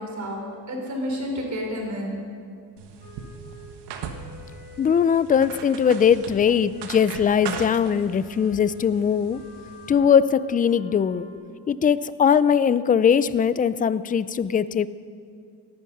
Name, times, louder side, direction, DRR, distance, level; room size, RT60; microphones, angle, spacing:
voice 1, 0.0-2.1, equal, 45° right, 0 dB, 4.4 m, -30 dB
sound 1, 2.8-9.9, right 6 dB, 80° right, 1.4 m, -39 dB
Wind instrument woodwind instrument, 3.0-6.3 6.7-11.3, left 5 dB, 60° left, 3.8 m, -47 dB
voice 2, 4.8-9.4 9.9-11.3 11.7-14.9, left 7 dB, 20° left, 16 dB, 0.4 m, -20 dB
17.5 x 11.0 x 5.6 m, 2.3 s
cardioid pair, 100°, 40 cm